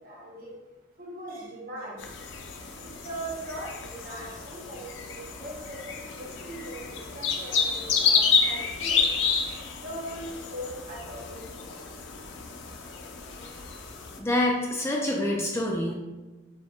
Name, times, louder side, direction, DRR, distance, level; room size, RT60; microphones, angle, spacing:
voice 1, 0.0-0.5 1.0-2.0 2.9-5.9 6.2-9.0 9.7-11.4 11.7-11.8, right 1 dB, 50° right, -4 dB, 1.2 m, -40 dB
sound 1, 2.0-14.2, left 5 dB, 70° left, 0.5 m, -30 dB
voice 2, 13.4-13.7 14.2-15.9, left 1 dB, 15° left, -2 dB, 0.4 m, -27 dB
4.5 x 2.1 x 4.4 m, 1.1 s
head